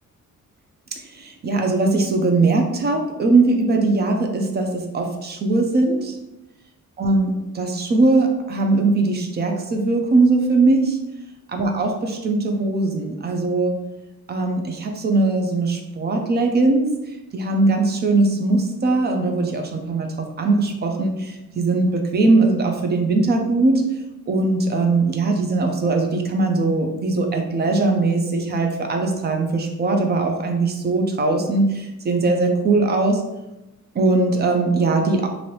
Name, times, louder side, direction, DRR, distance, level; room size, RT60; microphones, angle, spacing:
voice 1, 1.2-6.1 7.0-11.0 11.5-13.7 14.3-16.9 17.3-23.8 24.3-33.2 34.0-35.3, right 3 dB, 35° right, 4 dB, 0.4 m, -20 dB
2.8 x 2.6 x 3.1 m, 0.97 s
wide cardioid pair, 165°, 31 cm